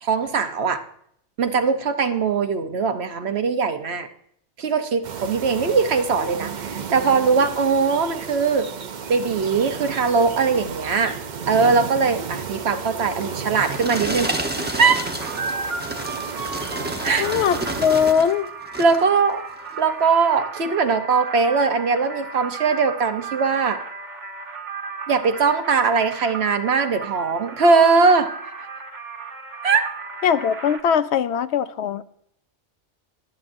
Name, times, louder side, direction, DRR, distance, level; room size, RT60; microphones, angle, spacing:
voice 1, 0.0-0.8 1.4-4.1 4.6-8.7 9.1-11.1 11.5-14.3 14.8-15.0 17.0-17.3 18.8-19.4 19.8-23.8 25.1-28.3 29.6-29.9, right 5 dB, 65° right, 8 dB, 1.1 m, -20 dB
sound 1, 5.0-18.1, right 6 dB, 50° right, 0.7 m, -33 dB
sound 2, 13.2-18.3 18.7-19.1 19.7-19.8, right 1 dB, 10° right, 0.9 m, -30 dB
sound 3, 15.2-30.8, right 4 dB, 90° right, 1.6 m, -35 dB
voice 2, 17.2-18.5 30.2-32.0, left 7 dB, 75° left, 13 dB, 0.8 m, -21 dB
22.5 x 8.6 x 2.6 m, 0.69 s
omnidirectional pair, 1.2 m